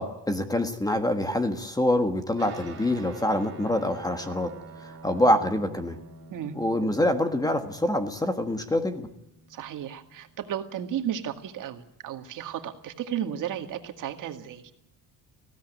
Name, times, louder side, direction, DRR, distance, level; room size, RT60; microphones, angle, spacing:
voice 1, 0.0-4.5 4.8-6.0 6.5-9.1, left 1 dB, 10° left, 8 dB, 1.5 m, -25 dB
Guitar, 2.4-11.1, right 4 dB, 30° right, 4.6 m, -48 dB
voice 2, 9.5-14.6, right 10 dB, 55° right, 6 dB, 2.1 m, -34 dB
20.0 x 16.5 x 9.3 m, 0.83 s
cardioid pair, 160°, 39 cm